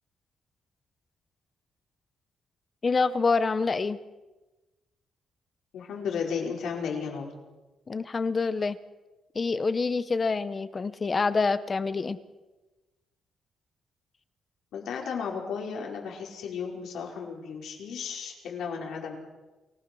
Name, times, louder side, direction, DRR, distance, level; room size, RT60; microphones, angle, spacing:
voice 1, 2.8-4.0 7.9-8.8 9.3-12.2, left 4 dB, 25° left, 14 dB, 0.7 m, -26 dB
voice 2, 5.7-7.3 14.7-19.2, left 6 dB, 80° left, -1 dB, 5.0 m, -34 dB
29.0 x 17.5 x 6.2 m, 1.1 s
wide cardioid pair, 180°, 0 cm